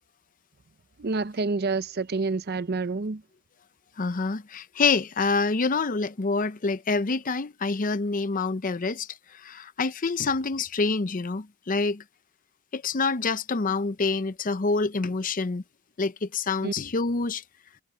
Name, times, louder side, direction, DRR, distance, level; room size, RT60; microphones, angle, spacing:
voice 1, 1.0-3.2 16.6-16.7, right 3 dB, 45° right, 0.6 m, -28 dB
voice 2, 4.0-9.1 9.3-12.0 12.7-15.6 16.0-17.4, left 4 dB, 40° left, 0.6 m, -27 dB
head